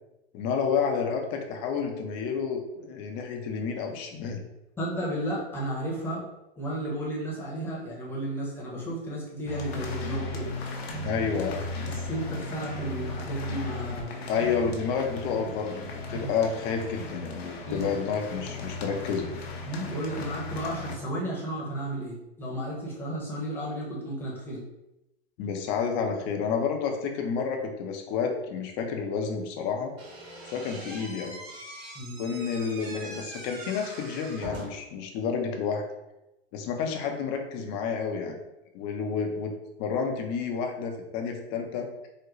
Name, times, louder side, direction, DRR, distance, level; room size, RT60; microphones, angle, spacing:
voice 1, 0.3-4.4 11.0-11.6 14.3-19.3 25.4-29.9 30.5-31.4 32.2-35.8 36.5-38.4 38.7-39.5 39.8-42.1, left 6 dB, 35° left, 3 dB, 0.6 m, -30 dB
voice 2, 4.8-6.2 6.6-10.5 11.9-14.2 16.1-16.3 17.7-17.9 19.7-24.6 31.9-32.2, right 1 dB, 5° left, -6 dB, 0.9 m, -33 dB
sound 1, 9.5-21.0, left 2 dB, 75° left, 0.8 m, -37 dB
Slam / Squeak, 30.0-35.0, right 1 dB, 75° right, 1.4 m, -42 dB
3.7 x 2.1 x 3.1 m, 0.93 s
hypercardioid pair, 125°, 31 cm